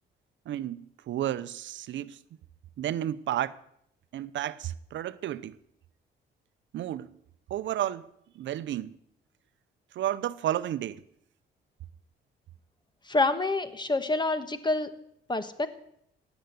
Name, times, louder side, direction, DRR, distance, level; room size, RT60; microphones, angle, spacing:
voice 1, 0.5-2.2 2.8-3.6 4.1-5.6 6.7-7.1 7.5-8.1 8.3-9.0 9.9-11.0, right 12 dB, 70° right, 0.7 m, -32 dB
voice 2, 13.1-14.9 15.3-15.7, left 2 dB, 20° left, 1.4 m, -27 dB
17.0 x 8.0 x 8.0 m
cardioid pair, 90°, 20 cm